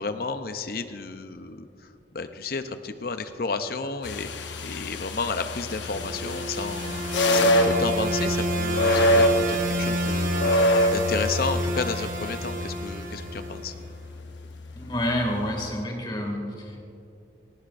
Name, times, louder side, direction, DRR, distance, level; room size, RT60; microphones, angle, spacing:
voice 1, 0.0-1.7 2.1-7.0 7.3-13.7, left 4 dB, 50° left, 9 dB, 0.6 m, -32 dB
sound 1, 4.0-15.8, equal, 75° left, 0.8 m, -27 dB
sound 2, 5.6-13.7, equal, 45° right, 1.2 m, -29 dB
voice 2, 14.8-16.8, equal, 25° left, 0 dB, 2.2 m, -29 dB
19.0 x 15.0 x 2.6 m, 2.5 s
head